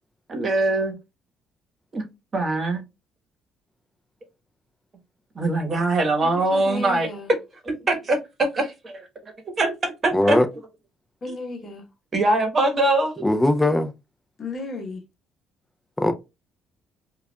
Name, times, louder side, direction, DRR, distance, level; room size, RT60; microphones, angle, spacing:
voice 1, 0.3-0.9 1.9-2.0 2.3-2.8 5.3-7.1 7.6-10.4 12.1-13.1, right 2 dB, 35° right, 1.2 m, -23 dB
voice 2, 6.2-7.3 11.2-11.8 14.4-15.0, left 2 dB, 40° left, 1.2 m, -34 dB
voice 3, 10.1-10.5 13.2-13.9 16.0-16.1, left 1 dB, 10° left, 0.6 m, -19 dB
4.7 x 2.4 x 2.2 m
cardioid pair, 100°, 0 cm